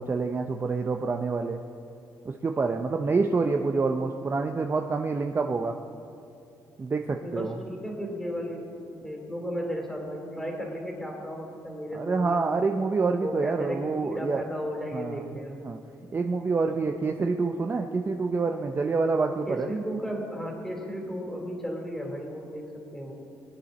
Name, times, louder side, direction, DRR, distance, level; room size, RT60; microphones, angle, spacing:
voice 1, 0.0-1.6 2.2-5.7 6.8-7.6 11.9-14.4 14.9-15.3 15.6-15.8 16.1-19.7, right 4 dB, 25° right, 4 dB, 0.5 m, -27 dB
voice 2, 7.2-12.4 13.1-15.6 16.8-16.9 19.5-23.1, equal, 5° left, 0 dB, 2.9 m, -35 dB
22.5 x 9.9 x 4.2 m, 2.7 s
cardioid pair, 120°, 8 cm